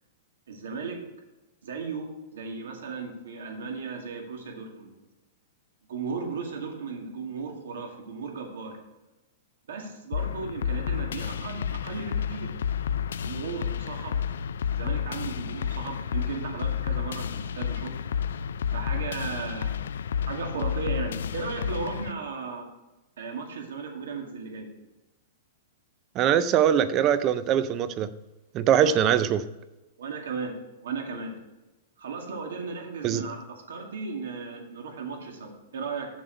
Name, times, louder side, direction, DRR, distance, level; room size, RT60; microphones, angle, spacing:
voice 1, 0.5-1.0 1.6-5.0 5.9-8.8 9.7-12.5 13.2-14.2 14.8-17.9 18.7-19.8 20.3-22.7 23.2-24.7 28.7-29.0 30.0-30.5 30.8-31.3 32.0-36.1, right 5 dB, 90° right, 2 dB, 2.1 m, -36 dB
sound 1, 10.1-22.1, left 8 dB, 80° left, 0.3 m, -31 dB
voice 2, 26.2-28.1 28.5-29.5 33.0-33.2, right 9 dB, 20° right, 14 dB, 0.4 m, -22 dB
7.2 x 6.9 x 5.1 m, 1.0 s
supercardioid pair, 180°, 0 cm